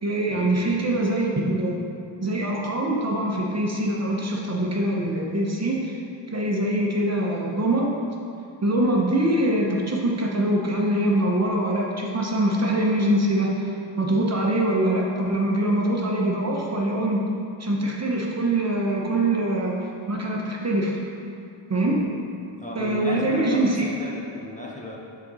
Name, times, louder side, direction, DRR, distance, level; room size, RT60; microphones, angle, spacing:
voice 1, 0.0-1.8 2.2-5.9 6.3-7.9 8.6-13.7 14.0-17.3 17.6-21.0 21.7-22.2 22.7-23.8, right 1 dB, 30° right, -2 dB, 0.9 m, -23 dB
voice 2, 22.6-25.0, equal, 15° left, -3 dB, 0.8 m, -35 dB
6.7 x 4.0 x 4.8 m, 2.7 s
wide cardioid pair, 75°, 49 cm